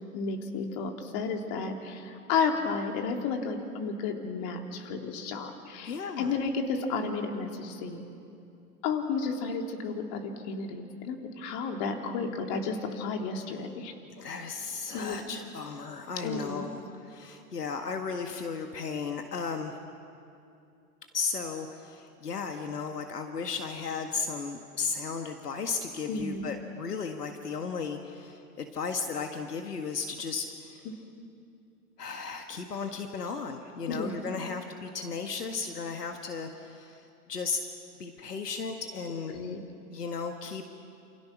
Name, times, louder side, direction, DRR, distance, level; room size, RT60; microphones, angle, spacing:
voice 1, 0.1-8.1 8.8-13.9 14.9-15.2 16.2-16.6 26.1-26.4 33.9-34.2 39.3-39.6, left 4 dB, 45° left, 3 dB, 3.4 m, -32 dB
voice 2, 5.9-6.4 14.2-19.8 21.1-30.9 32.0-37.6 38.0-39.4 39.9-40.6, left 5 dB, 85° left, 5 dB, 1.9 m, -35 dB
28.5 x 28.0 x 6.1 m, 2.6 s
hypercardioid pair, 105°, 46 cm